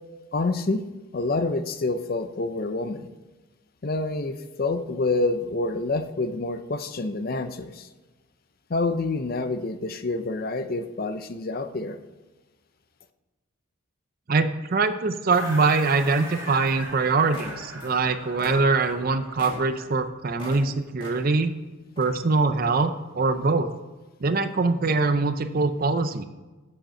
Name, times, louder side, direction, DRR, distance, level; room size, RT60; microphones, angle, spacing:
voice 1, 0.3-0.8 1.1-3.1 3.8-7.9 8.7-12.0, left 3 dB, 45° left, 10 dB, 0.5 m, -27 dB
voice 2, 14.3-21.5 22.0-23.7 24.2-26.3, right 3 dB, 40° right, 10 dB, 0.5 m, -23 dB
sound 1, 15.3-19.7, right 1 dB, 15° right, 2.3 m, -40 dB
sound 2, 16.4-17.0 17.2-18.0 18.3-20.7 21.0-21.5 22.0-22.2, left 1 dB, 25° left, 1.9 m, -42 dB
7.9 x 7.4 x 4.4 m, 1.2 s
head